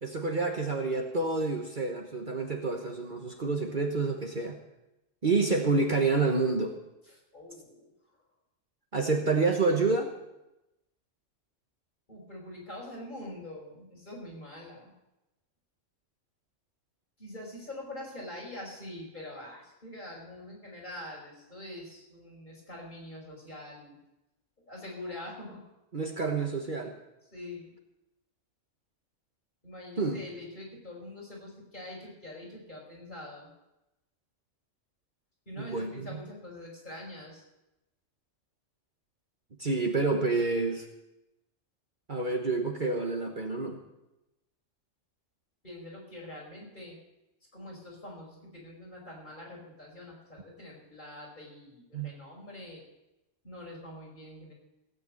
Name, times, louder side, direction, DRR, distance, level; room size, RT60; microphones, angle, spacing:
voice 1, 0.0-4.6 5.2-6.7 8.9-10.1 25.9-26.9 30.0-30.2 35.6-36.2 39.6-40.8 42.1-43.8 51.9-52.1, right 3 dB, 40° right, 2 dB, 1.4 m, -28 dB
voice 2, 5.4-5.7 7.0-7.9 12.1-14.9 17.2-24.0 24.7-25.6 27.3-27.7 29.6-33.5 35.5-37.4 45.6-47.0 47.5-52.8 53.4-54.5, left 1 dB, 40° left, -3 dB, 5.5 m, -44 dB
16.5 x 8.7 x 7.7 m, 0.93 s
omnidirectional pair, 1.3 m